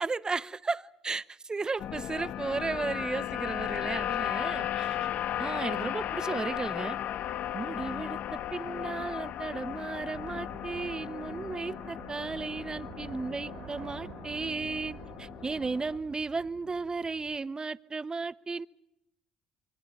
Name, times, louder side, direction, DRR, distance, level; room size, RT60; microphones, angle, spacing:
voice 1, 0.0-5.0 5.4-7.0 7.5-18.7, right 4 dB, 30° right, 0.9 m, -34 dB
sound 1, 1.8-16.0, left 11 dB, 65° left, 0.8 m, -36 dB
sound 2, 10.0-17.4, right 7 dB, 70° right, 3.8 m, -49 dB
26.0 x 24.0 x 6.7 m
hypercardioid pair, 50°, 3 cm